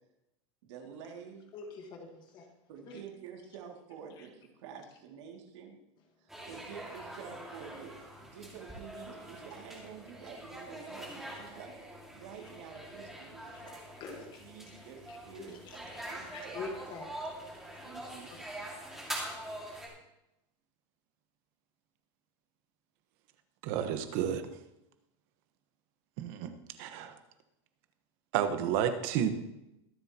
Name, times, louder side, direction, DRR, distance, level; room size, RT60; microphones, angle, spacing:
voice 1, 0.6-1.5 2.7-5.8 6.2-13.8 14.1-16.6 17.8-18.8, right 7 dB, 70° right, 2 dB, 2.4 m, -49 dB
voice 2, 1.5-2.5 2.9-3.0 4.2-4.3 13.5-14.7 15.1-18.0 18.3-18.5, left 4 dB, 30° left, 4 dB, 1.4 m, -46 dB
sound 1, 6.3-19.9, right 1 dB, ahead, 2.0 m, -44 dB
voice 3, 23.6-24.5 26.2-26.5 26.8-27.2 28.3-29.3, right 9 dB, 45° right, 8 dB, 1.2 m, -31 dB
23.0 x 7.7 x 2.9 m, 0.88 s
supercardioid pair, 170°, 16 cm